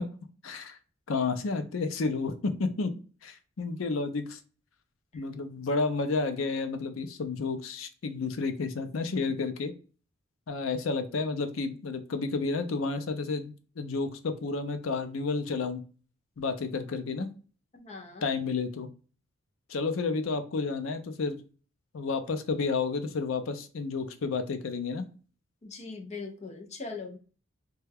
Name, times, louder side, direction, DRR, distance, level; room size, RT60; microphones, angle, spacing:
voice 1, 0.4-0.8 1.1-2.9 3.2-4.4 5.1-9.7 10.5-15.8 16.4-17.3 18.2-18.9 19.7-21.4 21.9-25.1, left 4 dB, 85° left, 8 dB, 0.5 m, -31 dB
voice 2, 17.7-18.3 25.6-27.2, left 4 dB, 35° left, 3 dB, 0.6 m, -41 dB
3.2 x 2.3 x 3.3 m, 0.38 s
head